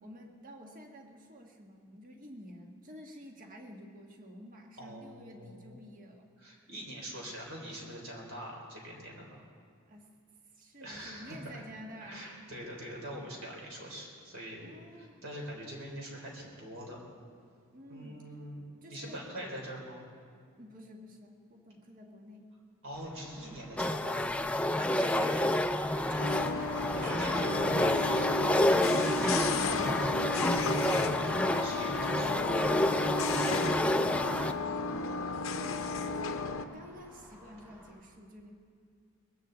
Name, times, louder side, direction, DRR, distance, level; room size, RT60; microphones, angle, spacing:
voice 1, 0.0-6.3 9.9-10.1 10.5-12.3 14.6-15.2 17.7-18.3 18.8-19.2 20.6-22.5 25.2-25.7 26.1-27.5 33.6-38.5, equal, 40° right, 2 dB, 1.4 m, -50 dB
voice 2, 4.8-5.8 6.4-9.4 10.8-11.7 12.0-17.0 17.9-20.1 22.8-24.3 24.5-25.4 26.1-26.4 27.0-32.4, equal, 60° right, -2 dB, 3.6 m, -43 dB
Traffic noise roadway noise, 22.9-37.9, equal, 15° right, 5.0 m, -47 dB
sound 1, 23.8-34.5, left 1 dB, 5° left, 0.3 m, -29 dB
sound 2, 26.2-36.7, left 4 dB, 60° left, 0.7 m, -34 dB
21.0 x 16.0 x 3.9 m, 2.2 s
head